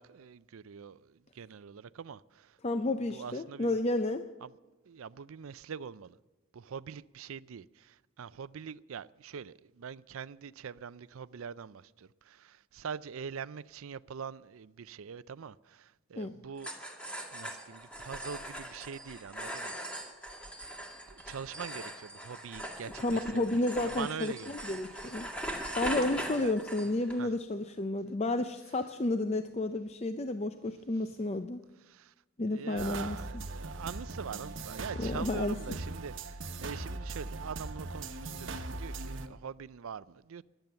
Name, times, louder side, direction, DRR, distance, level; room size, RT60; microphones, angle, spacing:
voice 1, 0.0-2.5 3.1-3.8 4.4-4.5 4.9-6.2 6.5-16.7 17.3-19.8 20.6-20.7 21.1-24.5 26.4-26.6 27.2-27.3 31.9-32.1 32.5-40.4, right 6 dB, 75° right, 0.4 m, -43 dB
voice 2, 2.6-4.3 16.2-16.4 23.0-25.3 25.7-31.6 32.4-33.4 35.0-35.5, left 2 dB, 30° left, 0.5 m, -31 dB
sound 1, 16.6-27.2, right 1 dB, 5° left, 2.0 m, -41 dB
sound 2, 32.8-39.3, right 2 dB, 60° right, 1.1 m, -40 dB
22.5 x 9.1 x 6.9 m
head